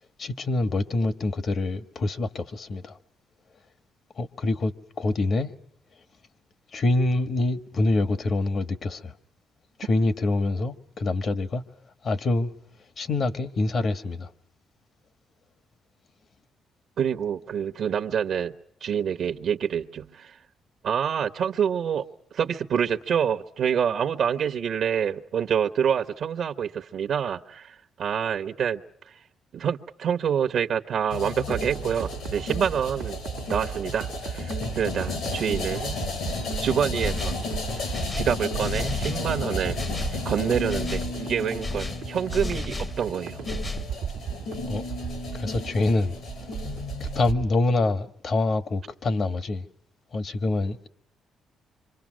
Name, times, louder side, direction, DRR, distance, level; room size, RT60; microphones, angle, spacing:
voice 1, 0.2-2.9 4.2-5.5 6.7-9.1 9.8-11.6 12.0-12.5 13.0-14.3 44.7-44.9 45.3-46.1 46.6-46.7 47.0-49.6 50.1-50.9, left 2 dB, 50° left, 1.4 m, -25 dB
voice 2, 17.0-18.5 18.8-20.4 20.8-22.0 22.3-28.8 29.5-33.2 33.5-35.9 36.6-37.3 38.1-39.8 40.1-43.5, right 8 dB, 65° right, 1.0 m, -27 dB
Bali Cremation Ceremony - Prelude, 31.1-47.3, left 4 dB, 85° left, 5.2 m, -34 dB
sound 1, 31.5-47.5, right 9 dB, 85° right, 1.2 m, -36 dB
sound 2, 37.0-37.5 37.9-39.3 39.8-40.2 40.7-41.1 41.6-43.0 43.5-43.9, left 2 dB, 25° left, 0.9 m, -33 dB
26.5 x 25.0 x 6.3 m
cardioid pair, 90°, 0 cm